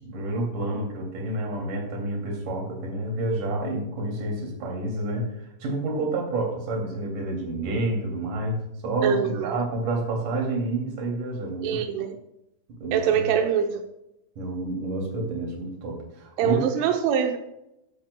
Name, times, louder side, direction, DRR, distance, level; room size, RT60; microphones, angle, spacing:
voice 1, 0.0-11.8 12.8-13.3 14.4-16.6, right 2 dB, 50° right, 0 dB, 3.6 m, -29 dB
voice 2, 9.0-9.6 11.6-12.1 12.9-13.7 16.4-17.4, right 8 dB, 85° right, 4 dB, 3.3 m, -24 dB
14.5 x 10.5 x 2.2 m, 0.84 s
omnidirectional pair, 5.5 m